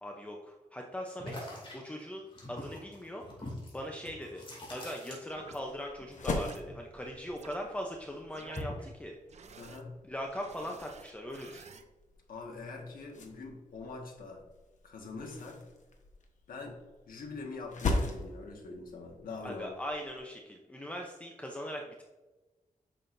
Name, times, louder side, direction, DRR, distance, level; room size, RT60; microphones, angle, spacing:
voice 1, 0.0-9.2 10.0-11.7 19.4-22.0, equal, 10° left, 1 dB, 0.7 m, -40 dB
sound 1, 1.2-5.7 6.0-7.6 7.9-8.9, left 1 dB, 35° left, 2.5 m, -44 dB
sound 2, 5.3-5.6 6.3-6.6 7.3-7.5 8.3-8.6 9.3-9.8 10.3-11.8, right 5 dB, 50° right, 0.6 m, -52 dB
sound 3, 5.5-20.2, left 2 dB, 60° left, 1.1 m, -41 dB
voice 2, 9.6-9.9 12.3-14.4 14.8-15.6 16.5-16.8 17.1-19.7, left 3 dB, 90° left, 1 dB, 1.6 m, -43 dB
9.1 x 6.3 x 2.6 m, 1.1 s
wide cardioid pair, 150°, 14 cm